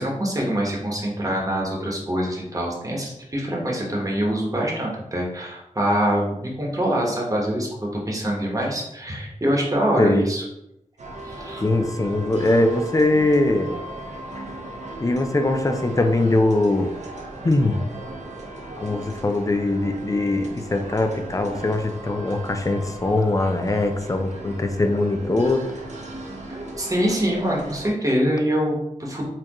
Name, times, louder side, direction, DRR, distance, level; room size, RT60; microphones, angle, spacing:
voice 1, 0.0-10.4 11.2-11.6 26.5-29.3, equal, 25° right, -3 dB, 1.2 m, -24 dB
sound 1, 11.0-27.9, right 2 dB, 60° right, 0.8 m, -37 dB
voice 2, 11.6-13.8 15.0-16.9 17.4-17.8 18.8-25.7, left 2 dB, 25° left, 5 dB, 0.5 m, -21 dB
4.4 x 2.5 x 3.0 m, 0.84 s
cardioid pair, 50°, 13 cm